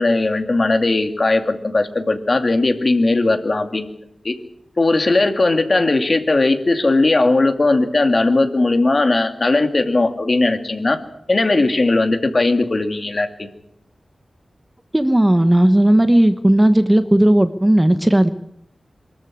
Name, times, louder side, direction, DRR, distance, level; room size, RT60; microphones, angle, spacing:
voice 1, 0.0-3.9 4.2-4.3 4.8-11.0 11.3-13.5, left 2 dB, 35° left, 7 dB, 2.4 m, -18 dB
voice 2, 14.9-18.3, right 1 dB, 15° right, 11 dB, 1.0 m, -14 dB
23.5 x 14.0 x 10.0 m, 0.76 s
wide cardioid pair, 130°, 0 cm